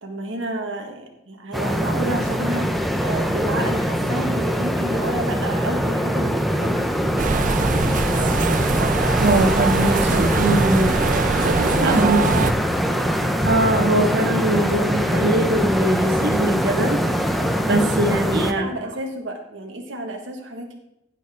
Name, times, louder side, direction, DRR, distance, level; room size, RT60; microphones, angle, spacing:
voice 1, 0.0-2.7 3.0-6.9 11.3-12.1 12.5-13.3 18.1-20.7, right 1 dB, 80° right, 2 dB, 1.6 m, -30 dB
sound 1, 1.5-18.5, equal, ahead, 0.8 m, -22 dB
sound 2, 7.2-12.5, right 5 dB, 45° right, 0.4 m, -24 dB
voice 2, 9.2-11.0 11.8-12.3 13.4-17.0 17.7-18.6, right 1 dB, 60° right, 2 dB, 1.6 m, -21 dB
16.0 x 7.0 x 3.6 m, 0.83 s
head